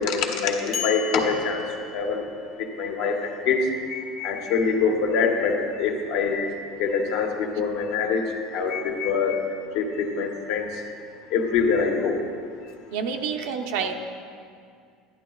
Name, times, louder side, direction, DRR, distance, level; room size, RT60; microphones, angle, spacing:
voice 1, 0.0-1.6 1.9-2.2 2.6-10.8 11.3-12.2, left 5 dB, 70° left, 2 dB, 1.1 m, -25 dB
sound 1, 0.7-2.6, left 7 dB, 35° left, 0.6 m, -35 dB
voice 2, 12.9-13.9, right 6 dB, 80° right, 4 dB, 0.7 m, -28 dB
11.5 x 10.5 x 2.4 m, 2.3 s
supercardioid pair, 135°, 0 cm